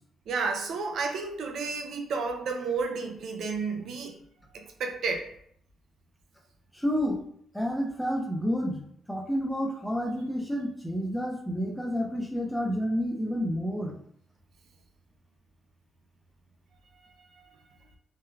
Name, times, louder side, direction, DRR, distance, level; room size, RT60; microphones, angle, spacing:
voice 1, 0.3-4.2 4.5-5.3 17.4-17.5, right 4 dB, 70° right, 3 dB, 0.4 m, -31 dB
voice 2, 6.7-7.2 7.5-14.0, equal, 5° left, 0 dB, 0.6 m, -30 dB
3.1 x 2.2 x 2.3 m, 0.67 s
cardioid pair, 90°, 0 cm